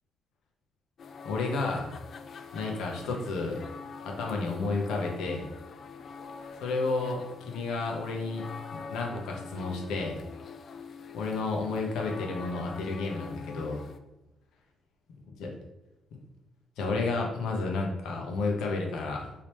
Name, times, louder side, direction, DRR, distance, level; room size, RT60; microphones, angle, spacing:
sound 1, 1.0-14.0, left 5 dB, 55° left, 0.3 m, -44 dB
voice 1, 1.2-1.9 2.5-3.6 4.0-5.5 6.6-8.4 8.7-10.2 11.1-13.8 15.4-15.5 16.8-19.3, left 3 dB, 85° left, 0 dB, 0.8 m, -31 dB
3.3 x 2.9 x 3.0 m, 0.92 s
cardioid pair, 90°, 0 cm